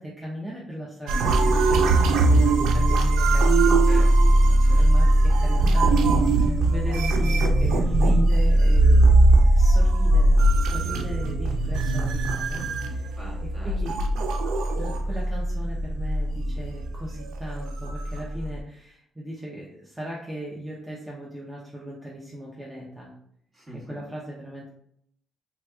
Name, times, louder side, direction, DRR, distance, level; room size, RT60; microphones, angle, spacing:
voice 1, 0.0-3.8 4.5-9.2 9.5-13.2 13.6-14.0 14.8-23.1 23.9-24.7, equal, 10° right, -5 dB, 0.7 m, -37 dB
sound 1, 1.1-18.6, right 2 dB, 85° right, 0.3 m, -20 dB
voice 2, 3.7-4.8 13.1-13.7 23.5-24.0, equal, 30° right, -4 dB, 1.4 m, -43 dB
3.4 x 2.8 x 2.3 m, 0.69 s
cardioid pair, 90°, 0 cm